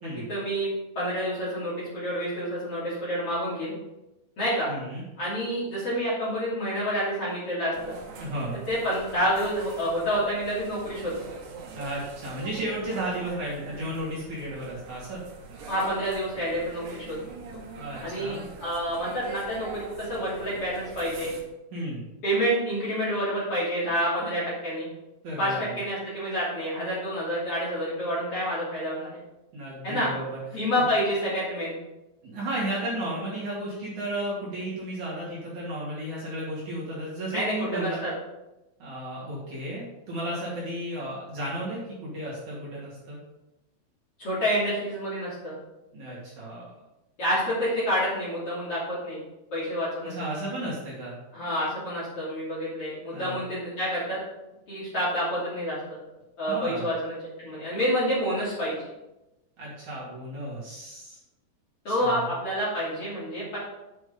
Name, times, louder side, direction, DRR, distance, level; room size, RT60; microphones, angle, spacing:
voice 1, 0.0-3.7 4.4-4.7 5.2-8.0 8.7-11.3 15.6-17.2 18.0-21.3 22.2-24.9 25.4-29.2 29.8-30.1 30.5-31.8 37.3-38.1 44.2-45.5 47.2-49.2 49.5-50.1 51.3-54.2 54.7-55.8 56.4-58.9 61.8-63.6, equal, 35° left, -8 dB, 3.2 m, -28 dB
voice 2, 4.7-5.0 8.2-8.6 11.7-15.2 17.7-18.5 21.7-22.0 25.2-25.8 29.5-30.4 30.8-30.9 32.2-38.0 38.8-43.2 45.9-46.7 50.0-51.1 53.1-53.4 56.5-56.9 59.6-61.2 61.9-62.3, right 1 dB, 50° right, -7 dB, 3.3 m, -34 dB
sound 1, 7.7-21.4, right 5 dB, 80° right, 3.7 m, -43 dB
8.7 x 6.3 x 5.1 m, 0.98 s
omnidirectional pair, 5.2 m